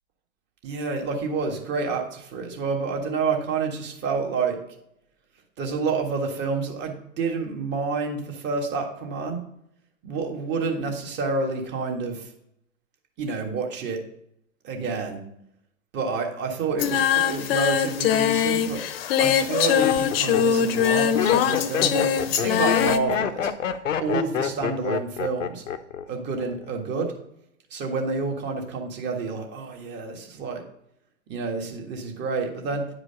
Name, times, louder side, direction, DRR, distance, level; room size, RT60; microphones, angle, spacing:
voice 1, 0.6-4.6 5.6-9.4 10.0-12.3 13.2-14.0 14.6-15.2 15.9-18.8 19.2-23.5 24.0-25.7 26.1-27.1 27.7-30.6 31.3-32.9, right 4 dB, 30° right, 2 dB, 1.7 m, -28 dB
Singing, 16.8-23.0, left 9 dB, 50° left, 0.9 m, -22 dB
Laughter, 18.4-18.8 19.4-26.0 26.3-26.8, left 8 dB, 80° left, 0.9 m, -27 dB
9.6 x 5.0 x 5.6 m, 0.76 s
hypercardioid pair, 125°, 38 cm